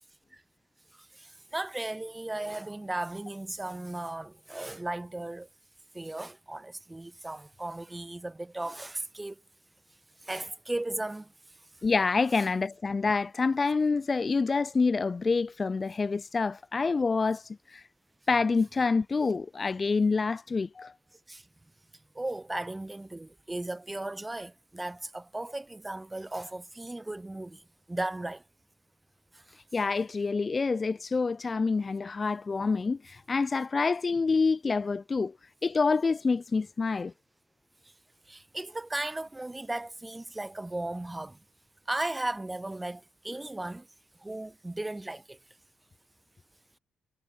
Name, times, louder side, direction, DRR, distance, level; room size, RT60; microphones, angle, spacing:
voice 1, 1.2-5.5 5.9-9.3 10.3-11.3 12.4-12.5 21.3-21.4 22.1-27.6 27.9-28.4 38.3-41.4 41.9-43.9 44.2-45.4, right 2 dB, 15° right, 1.2 m, -36 dB
voice 2, 11.8-17.8 18.3-20.9 29.7-35.3 35.6-37.1, left 4 dB, 30° left, 0.5 m, -27 dB
cardioid pair, 90°, 0 cm